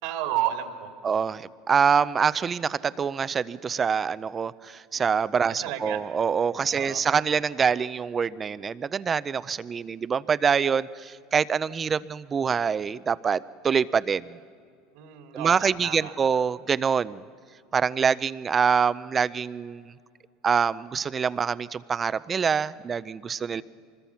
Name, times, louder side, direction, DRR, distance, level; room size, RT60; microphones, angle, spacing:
voice 1, 0.0-0.9 5.4-6.0 6.7-7.0 14.9-16.1 23.5-23.6, right 12 dB, 75° right, 5 dB, 2.4 m, -32 dB
voice 2, 1.0-14.4 15.3-17.2 17.7-19.9 20.4-23.6, right 6 dB, 25° right, 17 dB, 0.5 m, -25 dB
24.5 x 21.0 x 5.8 m, 2.3 s
supercardioid pair, 115°, 0 cm